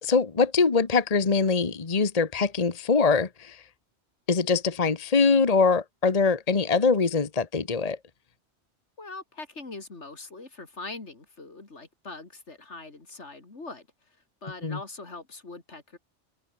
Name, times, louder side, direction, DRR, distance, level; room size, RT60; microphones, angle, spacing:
voice 1, 0.0-3.6 4.3-8.0 14.6-14.8, left 4 dB, 35° left, 1.2 m, -23 dB
voice 2, 9.0-13.9 14.4-16.0, left 3 dB, 75° left, 3.5 m, -42 dB
open air
omnidirectional pair, 1.2 m